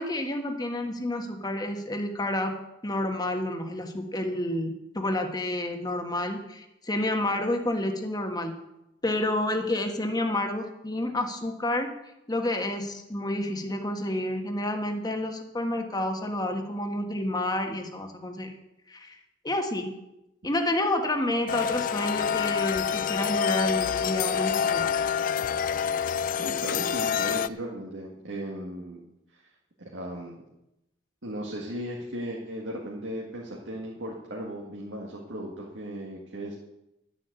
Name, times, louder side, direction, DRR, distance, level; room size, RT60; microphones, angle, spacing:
voice 1, 0.0-2.5 2.8-8.5 9.0-11.9 12.3-18.5 18.9-19.2 19.4-19.9 20.4-24.9 27.2-27.3, left 1 dB, 20° left, 4 dB, 1.4 m, -29 dB
sound 1, 21.5-27.5, left 7 dB, 45° left, 0.3 m, -27 dB
voice 2, 26.4-29.0 29.3-29.4 29.8-30.4 31.2-36.6, right 1 dB, 80° right, -3 dB, 1.9 m, -36 dB
11.5 x 7.6 x 8.1 m, 0.89 s
head